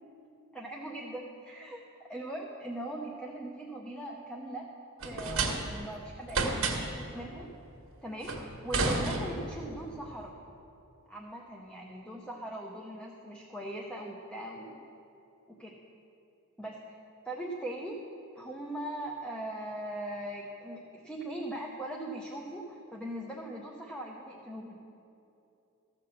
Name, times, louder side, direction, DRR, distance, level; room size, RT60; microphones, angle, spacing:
voice 1, 0.5-4.7 5.0-7.5 8.0-10.3 11.1-14.8 15.5-15.8 16.6-17.0 17.2-18.0 18.4-24.8, right 1 dB, 5° left, -1 dB, 0.6 m, -40 dB
sound 1, 5.0-5.9 6.3-7.1 8.2-9.6, right 3 dB, 65° right, 1.4 m, -31 dB
14.0 x 5.9 x 6.3 m, 2.8 s
head